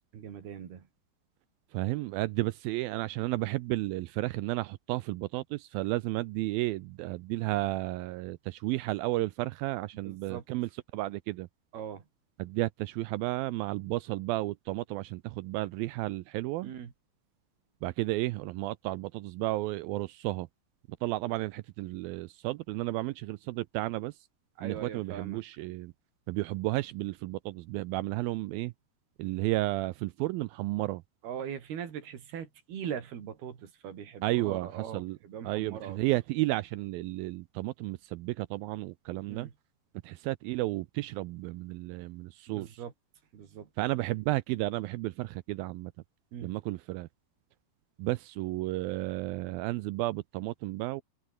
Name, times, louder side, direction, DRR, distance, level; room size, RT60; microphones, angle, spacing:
voice 1, 0.1-0.8 10.0-10.4 11.7-12.0 16.6-16.9 24.6-25.4 31.2-36.0 39.3-39.5 42.5-42.9 43.3-43.7 46.3-46.5, right 8 dB, 70° right, 4.8 m, -40 dB
voice 2, 1.7-11.5 12.4-16.7 17.8-20.5 21.0-24.1 24.6-25.9 26.3-28.7 29.2-31.0 34.2-35.2 35.4-39.5 40.0-42.8 43.8-45.9 46.4-47.1 48.0-51.0, right 19 dB, 85° right, 2.1 m, -32 dB
omnidirectional pair, 4.8 m